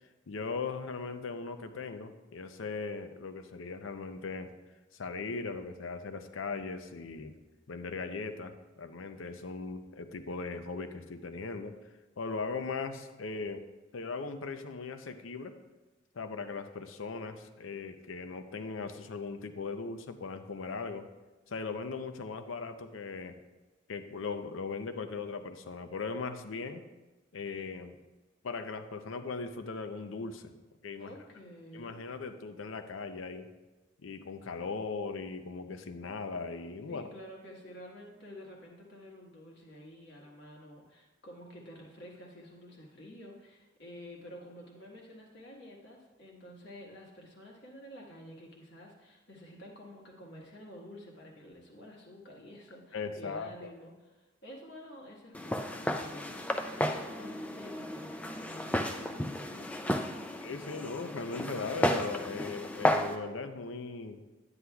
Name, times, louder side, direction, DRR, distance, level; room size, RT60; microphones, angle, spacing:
voice 1, 0.3-4.5 4.9-7.3 7.7-11.8 12.2-13.6 13.9-15.6 16.1-21.1 21.5-23.4 23.9-26.8 27.3-28.0 28.4-30.5 30.8-31.1 31.7-33.5 34.0-37.1 52.9-53.7 60.4-64.2, left 4 dB, 80° left, 9 dB, 0.6 m, -39 dB
voice 2, 31.0-32.0 36.9-60.3, left 1 dB, 55° left, -1 dB, 1.4 m, -50 dB
Walk footsteps, 55.3-63.2, left 1 dB, 5° left, 0.3 m, -33 dB
9.8 x 9.4 x 2.3 m, 1.1 s
head